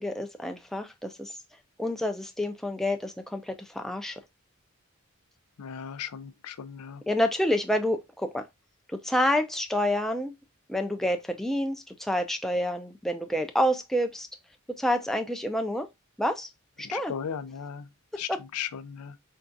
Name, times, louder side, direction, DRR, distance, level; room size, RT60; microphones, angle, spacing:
voice 1, 0.0-1.4 1.8-4.2 7.1-8.4 8.9-10.3 10.7-14.3 14.8-15.9 16.2-16.5 16.8-17.1 18.3-18.4, left 1 dB, ahead, 0.3 m, -28 dB
voice 2, 5.6-7.0 16.8-17.9 18.2-19.2, left 8 dB, 85° left, 0.4 m, -36 dB
4.5 x 2.3 x 2.6 m
head